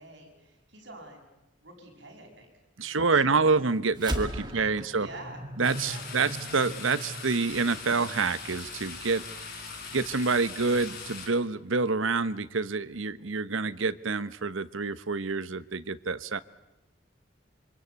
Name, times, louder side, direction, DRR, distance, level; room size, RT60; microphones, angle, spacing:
voice 1, 0.0-2.5 2.8-3.6 4.3-4.5 5.0-5.4 5.8-6.3, right 2 dB, 60° right, 2 dB, 6.8 m, -48 dB
voice 2, 2.8-5.1 5.6-9.2 9.9-16.4, right 4 dB, 80° right, 16 dB, 1.0 m, -27 dB
sound 1, 4.0-8.6, right 1 dB, 20° right, 2.3 m, -38 dB
sound 2, 5.6-11.3, left 4 dB, 45° left, 6.8 m, -41 dB
26.5 x 25.5 x 8.2 m, 0.98 s
head